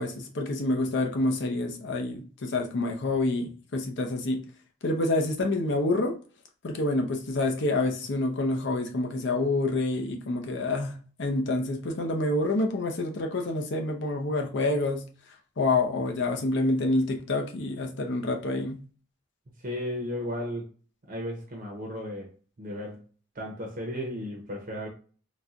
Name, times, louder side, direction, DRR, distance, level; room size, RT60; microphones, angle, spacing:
voice 1, 0.0-4.4 4.8-6.2 6.6-15.0 15.6-18.8, left 2 dB, 60° left, 0.6 m, -27 dB
voice 2, 19.6-20.7 21.1-22.3 22.6-23.0 23.3-24.9, equal, 45° right, 0.7 m, -34 dB
4.1 x 2.2 x 2.4 m
head